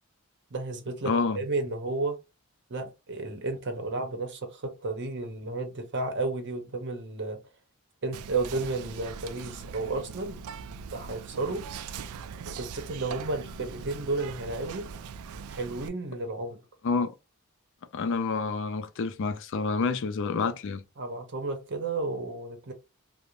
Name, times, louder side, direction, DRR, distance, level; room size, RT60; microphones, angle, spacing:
voice 1, 0.5-2.2 2.7-7.4 8.0-10.4 10.9-11.7 12.5-14.9 15.5-16.6 21.0-22.7, right 3 dB, 55° right, 0.8 m, -32 dB
voice 2, 1.1-1.4 16.8-17.1 17.9-20.8, left 4 dB, 60° left, 0.4 m, -28 dB
Whispering, 8.1-15.9, right 6 dB, 85° right, 0.3 m, -41 dB
2.5 x 2.1 x 2.9 m
head